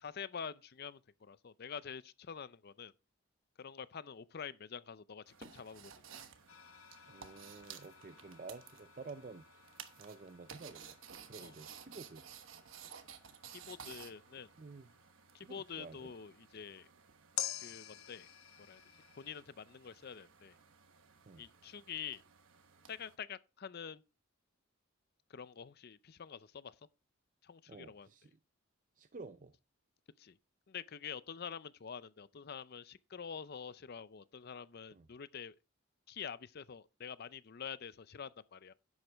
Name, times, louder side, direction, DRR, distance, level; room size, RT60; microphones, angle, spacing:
voice 1, 0.0-2.9 3.6-6.2 11.4-11.5 13.5-14.5 15.3-16.9 17.6-18.3 18.7-18.8 19.2-20.5 21.4-22.2 22.9-24.0 25.3-26.8 27.4-28.1 30.2-30.4 30.7-35.6 36.1-38.7, left 7 dB, 45° left, 0.5 m, -47 dB
sound 1, 5.3-23.1, right 7 dB, 65° right, 1.1 m, -56 dB
sound 2, 6.5-15.9 17.4-19.4, left 11 dB, 75° left, 0.9 m, -49 dB
voice 2, 7.1-9.7 10.0-10.8 11.3-12.2 13.7-13.9 14.6-14.9 15.4-16.1 21.3-21.4 27.7-28.4 29.0-29.5 34.9-35.1, right 3 dB, 40° right, 0.5 m, -51 dB
10.5 x 8.0 x 3.4 m
head